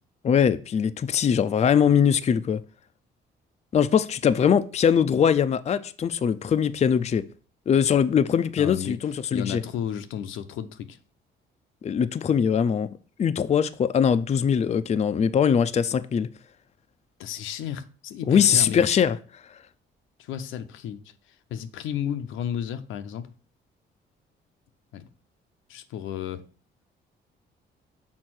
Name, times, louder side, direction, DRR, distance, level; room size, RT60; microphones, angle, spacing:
voice 1, 0.2-2.6 3.7-7.3 7.7-9.6 11.8-12.9 13.2-16.3 18.3-19.6, left 7 dB, 35° left, 0.4 m, -22 dB
voice 2, 8.6-9.0 9.3-11.0 17.2-18.8 20.2-23.3 24.9-25.1 25.7-26.4, left 9 dB, 85° left, 0.7 m, -33 dB
6.5 x 3.6 x 6.1 m
cardioid pair, 90°, 20 cm